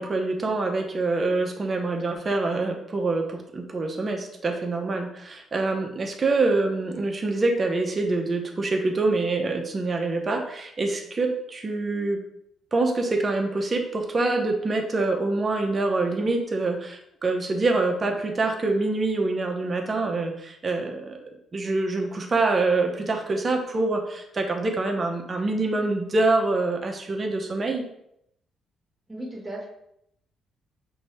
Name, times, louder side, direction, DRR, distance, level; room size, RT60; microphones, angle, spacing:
voice 1, 0.0-12.2 12.7-21.2 21.5-27.8, right 3 dB, 35° right, 3 dB, 0.9 m, -25 dB
voice 2, 29.1-29.7, right 1 dB, 10° right, -4 dB, 1.7 m, -35 dB
5.7 x 2.7 x 3.4 m, 0.76 s
cardioid pair, 90°, 0 cm